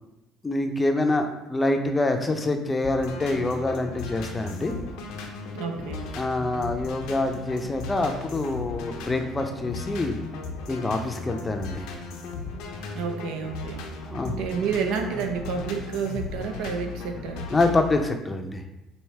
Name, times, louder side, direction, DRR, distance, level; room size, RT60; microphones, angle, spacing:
voice 1, 0.4-4.7 6.2-10.2 10.7-11.9 14.0-14.3 17.5-18.6, left 2 dB, 20° left, 5 dB, 0.5 m, -26 dB
sound 1, 2.8-18.1, left 4 dB, 80° left, 0.6 m, -36 dB
voice 2, 5.5-6.0 12.9-13.9 14.3-17.5, right 6 dB, 80° right, 5 dB, 0.6 m, -30 dB
4.7 x 2.7 x 3.2 m, 0.95 s
supercardioid pair, 85°, 0 cm